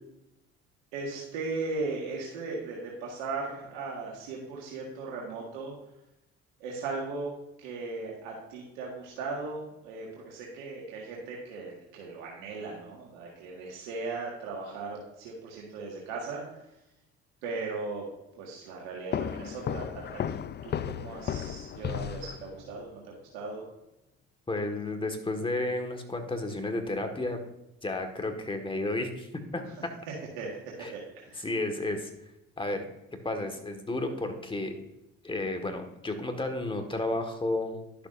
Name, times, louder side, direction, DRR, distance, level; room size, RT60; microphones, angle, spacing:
voice 1, 0.9-5.7 6.6-7.3 7.6-16.4 17.4-18.0 18.4-20.3 20.6-23.6 30.4-30.6 30.9-31.0 31.3-31.5, right 3 dB, 90° right, -3 dB, 1.7 m, -37 dB
sound 1, 19.1-22.8, left 9 dB, 35° left, 0.4 m, -34 dB
voice 2, 24.5-27.4 27.8-29.9 30.8-30.9 31.3-32.1 32.6-32.8 33.2-34.8 35.2-37.8, left 2 dB, 15° left, 5 dB, 1.6 m, -32 dB
11.5 x 6.9 x 2.6 m, 0.89 s
supercardioid pair, 75°, 30 cm